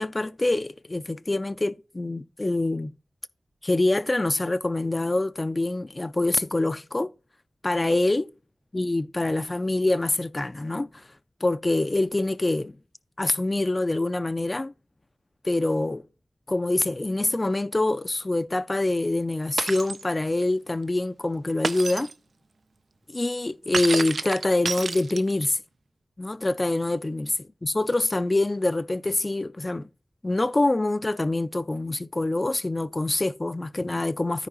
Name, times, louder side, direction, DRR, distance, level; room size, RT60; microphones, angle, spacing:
voice 1, 0.0-2.9 3.6-7.1 7.6-8.3 8.7-11.1 11.4-12.7 13.2-14.7 15.4-16.1 16.5-22.1 23.1-25.6 26.2-29.9 30.2-34.5, left 2 dB, 35° left, 0.3 m, -25 dB
Shatter, 19.6-20.0 21.6-22.1 23.7-25.5, right 4 dB, 85° right, 0.4 m, -29 dB
13.5 x 4.8 x 3.0 m
wide cardioid pair, 60°, 0 cm